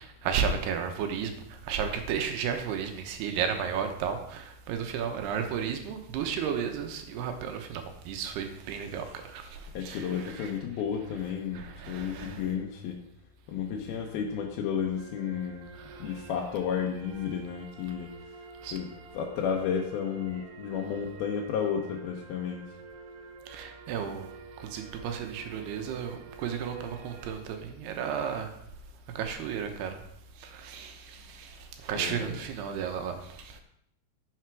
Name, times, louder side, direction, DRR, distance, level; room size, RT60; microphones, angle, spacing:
voice 1, 0.2-10.5 11.5-12.5 15.7-16.1 18.6-18.7 23.5-24.3 24.6-28.5 29.2-30.0 30.4-33.6, right 7 dB, 85° right, 5 dB, 3.1 m, -33 dB
voice 2, 9.7-13.0 13.5-15.7 16.0-18.1 18.7-22.7 32.0-32.4, left 7 dB, 75° left, 0 dB, 2.7 m, -32 dB
sound 1, 15.0-27.4, right 4 dB, 65° right, 3.0 m, -49 dB
10.5 x 7.2 x 4.7 m, 0.75 s
omnidirectional pair, 4.7 m